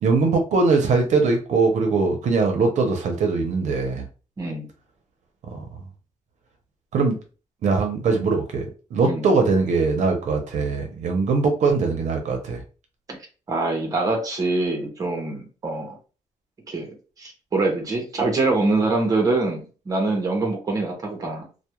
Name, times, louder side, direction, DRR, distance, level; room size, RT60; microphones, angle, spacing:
voice 1, 0.0-4.0 5.5-5.6 6.9-7.2 7.6-12.6, right 4 dB, 65° right, 3 dB, 0.6 m, -21 dB
voice 2, 4.4-4.7 9.0-9.3 13.5-16.0 16.7-21.5, right 3 dB, 25° right, 2 dB, 0.6 m, -24 dB
2.2 x 2.1 x 2.9 m, 0.35 s
wide cardioid pair, 155°, 13 cm